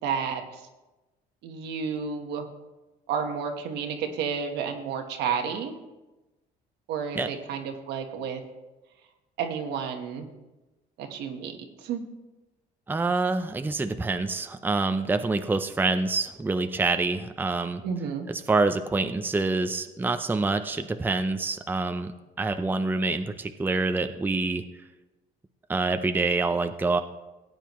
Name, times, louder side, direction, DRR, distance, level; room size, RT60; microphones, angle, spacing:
voice 1, 0.0-0.6 1.4-2.5 3.1-5.7 6.9-8.4 9.4-10.3 11.0-12.1 17.8-18.3, right 6 dB, 80° right, 4 dB, 1.3 m, -31 dB
voice 2, 12.9-17.8 18.3-22.1 22.4-24.6 25.7-27.0, right 3 dB, 10° right, 7 dB, 0.6 m, -26 dB
17.5 x 9.0 x 3.1 m, 1.1 s
cardioid pair, 110°, 17 cm